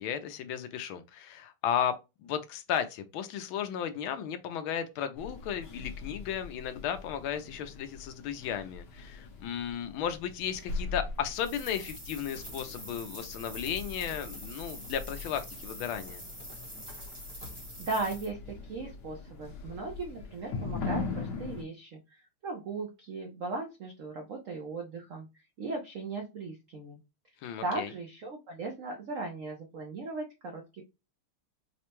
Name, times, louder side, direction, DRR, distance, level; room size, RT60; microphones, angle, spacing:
voice 1, 0.0-16.2 27.4-27.9, left 9 dB, 75° left, 1.3 m, -34 dB
sound 1, 5.2-21.6, left 4 dB, 60° left, 1.3 m, -41 dB
sound 2, 11.3-18.3, equal, 20° right, 0.8 m, -45 dB
voice 2, 17.8-25.3 25.6-27.0 27.6-30.8, right 3 dB, 75° right, 0.7 m, -37 dB
4.9 x 2.2 x 2.9 m
omnidirectional pair, 2.4 m